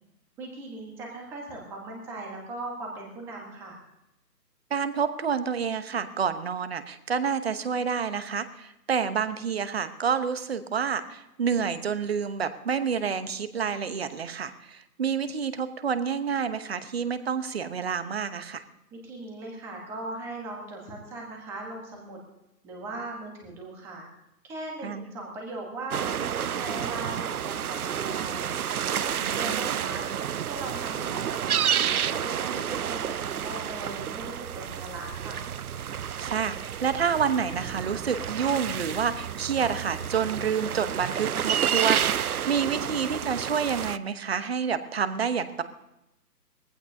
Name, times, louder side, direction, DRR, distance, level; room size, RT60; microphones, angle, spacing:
voice 1, 0.4-3.8 18.9-22.2 22.6-24.0 24.4-28.5 28.9-30.0 30.4-35.4, right 2 dB, 5° right, 0 dB, 1.1 m, -39 dB
voice 2, 4.7-18.6 24.8-25.1 29.2-29.8 36.2-45.6, right 6 dB, 40° right, 12 dB, 1.0 m, -29 dB
sound 1, 25.9-44.0, right 9 dB, 65° right, 0.5 m, -30 dB
21.0 x 15.0 x 2.7 m, 0.90 s
figure-of-eight pair, 155°, 50 cm